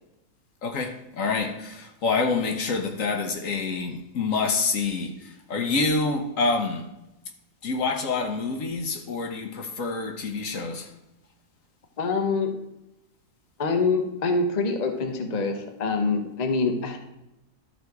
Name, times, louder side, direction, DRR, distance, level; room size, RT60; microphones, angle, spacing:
voice 1, 0.6-5.1 5.5-6.8 7.6-10.9, left 4 dB, 60° left, 1.2 m, -27 dB
voice 2, 12.0-12.5 13.6-17.0, left 4 dB, 35° left, 0.8 m, -25 dB
12.0 x 4.1 x 4.6 m
omnidirectional pair, 1.7 m